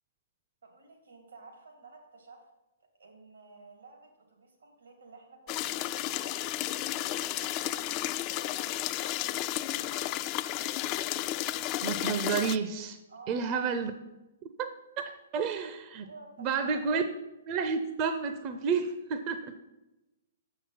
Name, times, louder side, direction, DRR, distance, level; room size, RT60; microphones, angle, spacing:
voice 1, 0.6-2.4 3.0-6.6 7.1-8.8 9.2-10.1 13.1-13.6 16.0-17.0, right 3 dB, 85° right, 2 dB, 2.7 m, -53 dB
sound 1, 5.5-12.6, left 14 dB, 35° left, 0.3 m, -32 dB
voice 2, 11.8-13.0 13.3-13.9 14.6-16.1 16.4-17.0 17.5-19.5, right 5 dB, 35° right, 8 dB, 0.6 m, -31 dB
7.1 x 5.9 x 5.8 m, 1.0 s
hypercardioid pair, 130°, 0 cm